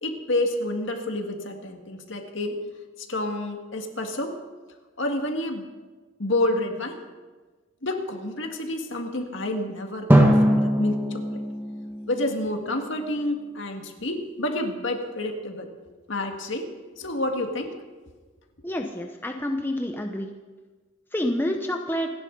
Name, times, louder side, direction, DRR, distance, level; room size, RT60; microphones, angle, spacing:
voice 1, 0.0-2.6 3.0-4.4 5.0-5.7 6.2-7.0 7.8-11.4 12.1-15.7 16.1-17.7, left 1 dB, 65° left, 3 dB, 1.9 m, -29 dB
Drum, 10.1-13.0, equal, 10° right, 1.5 m, -21 dB
voice 2, 18.6-20.3 21.1-22.1, left 1 dB, 10° left, 3 dB, 0.8 m, -28 dB
27.5 x 10.5 x 3.9 m, 1.3 s
head